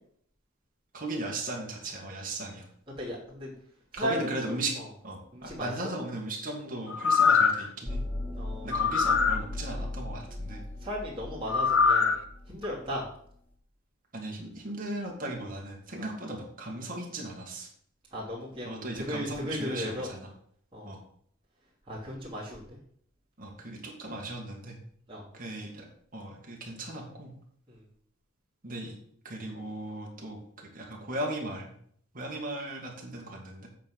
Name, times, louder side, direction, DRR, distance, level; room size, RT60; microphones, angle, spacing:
voice 1, 0.9-2.7 3.9-4.7 5.0-8.0 8.6-10.6 14.1-17.7 18.6-20.3 20.8-21.0 23.4-24.8 25.3-25.9 26.1-27.3 28.6-28.9 29.2-31.7 32.1-33.7, right 1 dB, 40° right, -1 dB, 2.0 m, -37 dB
voice 2, 3.0-3.5 3.9-4.3 4.8-4.9 5.3-5.9 7.3-7.4 8.3-8.7 10.8-12.2 12.5-13.0 16.0-16.1 18.1-20.1 20.7-21.0 21.9-22.8 25.1-25.2 27.7-27.8, equal, 25° right, -7 dB, 2.7 m, -36 dB
sound 1, 6.9-7.7 8.7-9.4 11.5-12.2 12.6-12.7, left 5 dB, 65° left, 0.7 m, -23 dB
sound 2, 7.9-13.3, left 1 dB, 10° left, 0.8 m, -38 dB
8.3 x 3.9 x 6.4 m, 0.63 s
head